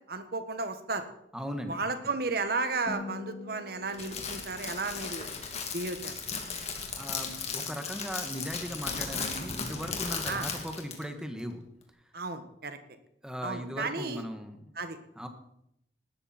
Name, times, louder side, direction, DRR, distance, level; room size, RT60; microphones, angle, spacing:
voice 1, 0.1-1.1 1.7-5.3 5.7-6.1 10.3-10.5 12.1-12.8 13.4-14.2 14.7-15.0, right 3 dB, 60° right, 8 dB, 1.6 m, -33 dB
voice 2, 1.3-1.8 6.9-11.6 13.2-14.6 15.1-15.3, equal, 5° right, 6 dB, 1.5 m, -38 dB
sound 1, 2.9-7.2, left 3 dB, 20° left, 3.4 m, -46 dB
Crackle, 3.9-11.0, left 5 dB, 40° left, 2.7 m, -36 dB
18.5 x 13.5 x 4.4 m, 0.77 s
head